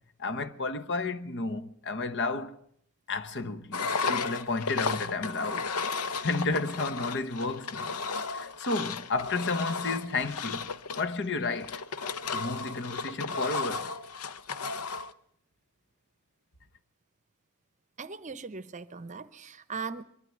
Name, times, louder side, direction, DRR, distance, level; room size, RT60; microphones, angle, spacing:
voice 1, 0.2-2.6 3.1-5.7 6.2-8.0 8.3-11.8 12.3-13.9, left 3 dB, 55° left, 1.1 m, -32 dB
Engine, 3.7-15.1, left 4 dB, 85° left, 0.8 m, -34 dB
voice 2, 18.0-20.0, right 5 dB, 35° right, 0.8 m, -39 dB
22.5 x 13.0 x 9.4 m
head